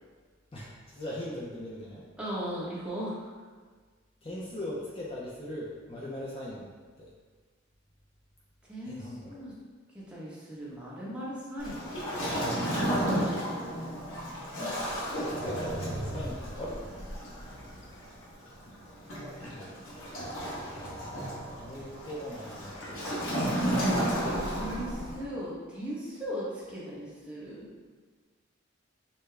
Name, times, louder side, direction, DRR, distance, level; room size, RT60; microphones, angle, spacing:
voice 1, 0.5-2.0 4.2-7.1 8.9-9.3 14.4-17.1 19.4-19.8 21.6-23.5, left 1 dB, 30° left, -6 dB, 0.6 m, -40 dB
voice 2, 2.2-3.3 8.7-9.5 9.9-11.9 13.2-13.4 24.5-27.7, equal, 5° right, -8 dB, 1.0 m, -38 dB
Waves surf, 11.6-25.2, equal, 80° left, 1.3 m, -33 dB
6.6 x 2.2 x 3.3 m, 1.5 s
head